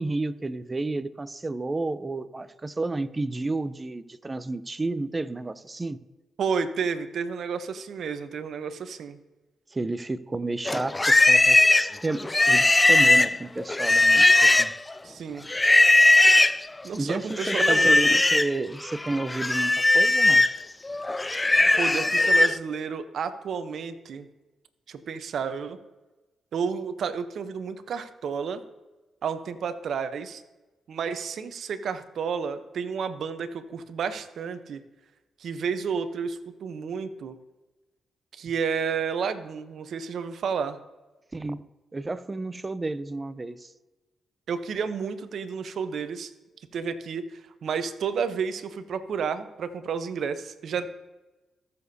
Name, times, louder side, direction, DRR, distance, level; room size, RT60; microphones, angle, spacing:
voice 1, 0.0-6.0 9.7-14.7 16.9-20.5 41.3-41.6 41.9-43.7, right 2 dB, 25° right, 14 dB, 0.7 m, -31 dB
voice 2, 6.4-9.2 15.0-15.5 16.8-18.2 21.8-24.3 24.9-25.8 26.5-28.6 29.2-30.4 30.9-34.8 35.4-37.4 38.3-40.8 44.5-46.3 46.7-50.9, right 6 dB, 70° right, 11 dB, 0.8 m, -31 dB
Livestock farm animals working animals, 10.7-14.9 15.5-16.6 17.4-18.5 18.9-22.6, left 2 dB, 20° left, 0.3 m, -19 dB
20.0 x 7.0 x 2.8 m, 1.1 s
supercardioid pair, 55°, 0 cm